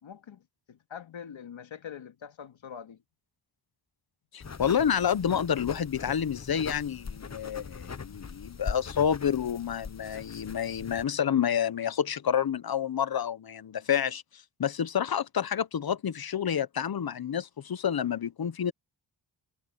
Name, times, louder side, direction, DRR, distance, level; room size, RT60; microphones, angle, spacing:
voice 1, 0.0-3.0, left 8 dB, 75° left, 2.4 m, -44 dB
voice 2, 4.3-14.2 14.6-18.7, left 8 dB, 50° left, 1.0 m, -29 dB
sound 1, 4.4-11.1, left 5 dB, 35° left, 1.2 m, -41 dB
cardioid pair, 75°, 47 cm